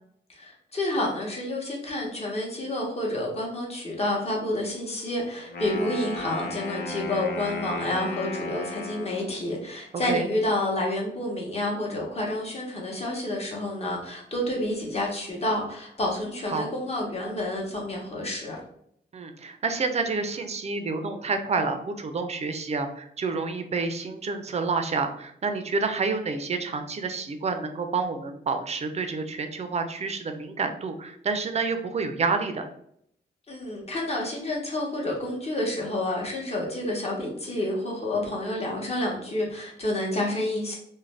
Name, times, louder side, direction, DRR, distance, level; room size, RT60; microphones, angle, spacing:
voice 1, 0.3-18.6 33.5-40.8, left 1 dB, 35° left, -2 dB, 0.9 m, -29 dB
Wind instrument woodwind instrument, 5.4-9.4, left 2 dB, 70° left, 0.5 m, -35 dB
voice 2, 19.1-32.7, right 4 dB, 35° right, 7 dB, 0.4 m, -29 dB
2.5 x 2.1 x 3.1 m, 0.69 s
cardioid pair, 105°, 19 cm